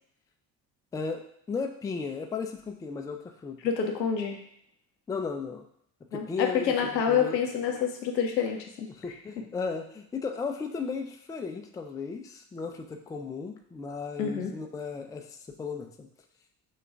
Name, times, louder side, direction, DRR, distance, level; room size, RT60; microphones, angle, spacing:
voice 1, 0.9-3.7 5.1-5.6 6.1-6.7 7.1-7.4 8.9-16.1, left 5 dB, 10° left, 4 dB, 0.3 m, -35 dB
voice 2, 3.6-4.4 6.1-8.9 14.2-14.5, left 7 dB, 85° left, 3 dB, 0.7 m, -27 dB
6.2 x 2.3 x 3.5 m, 0.71 s
figure-of-eight pair, 45°, 50 cm